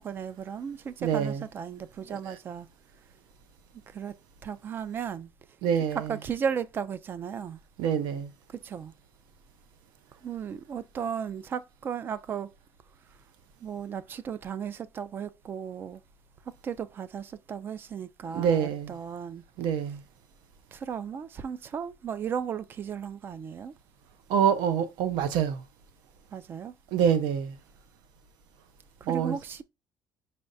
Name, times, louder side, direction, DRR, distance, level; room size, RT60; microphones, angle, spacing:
voice 1, 0.0-2.7 3.9-4.2 4.4-5.3 5.9-7.6 8.5-8.9 10.2-12.5 13.6-16.0 16.6-19.4 20.7-23.7 26.3-26.7 29.0-29.6, right 7 dB, 30° right, 0.3 m, -35 dB
voice 2, 1.0-1.4 5.6-6.1 7.8-8.3 18.3-18.9 19.6-20.0 24.3-25.6 26.9-27.6 29.1-29.4, right 8 dB, 75° right, 0.7 m, -26 dB
5.5 x 3.4 x 2.6 m
cardioid pair, 170°, 8 cm